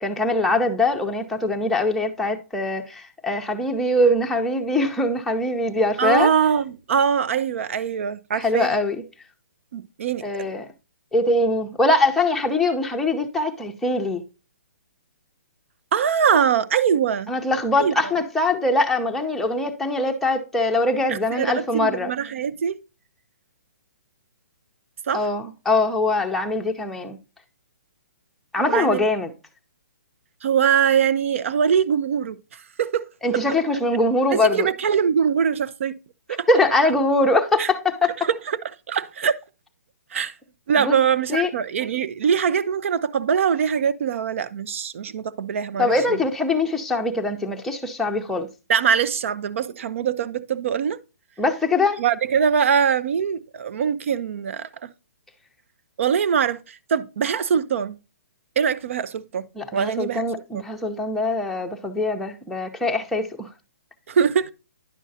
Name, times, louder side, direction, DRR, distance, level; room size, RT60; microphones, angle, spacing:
voice 1, 0.0-6.3 8.3-9.0 10.2-10.7 11.1-14.2 17.3-22.1 25.1-27.2 28.5-29.3 33.2-34.7 36.5-38.3 40.8-41.0 41.3-41.5 45.8-48.5 51.4-52.0 59.6-63.5, left 2 dB, 5° left, 0.7 m, -22 dB
voice 2, 6.0-8.8 9.7-10.5 15.9-17.3 17.8-18.1 21.1-22.8 25.1-25.2 28.7-29.1 30.4-33.1 34.3-36.0 36.3-36.5 37.6-37.7 38.2-38.6 38.9-39.3 40.1-40.3 40.7-46.2 48.7-51.0 52.0-54.9 56.0-58.0 58.6-59.5 59.7-60.3 64.1-64.5, right 7 dB, 55° right, 0.6 m, -22 dB
10.0 x 6.2 x 2.7 m
hypercardioid pair, 155°, 8 cm